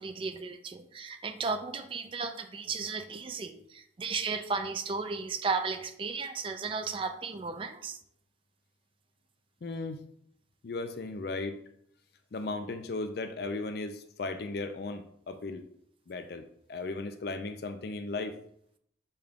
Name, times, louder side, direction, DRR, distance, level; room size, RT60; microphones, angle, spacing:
voice 1, 0.0-8.0, right 4 dB, 30° right, 8 dB, 0.3 m, -34 dB
voice 2, 9.6-10.0 10.6-11.6 12.3-15.6 16.1-18.4, left 3 dB, 55° left, 8 dB, 0.4 m, -36 dB
6.4 x 2.3 x 3.5 m, 0.69 s
head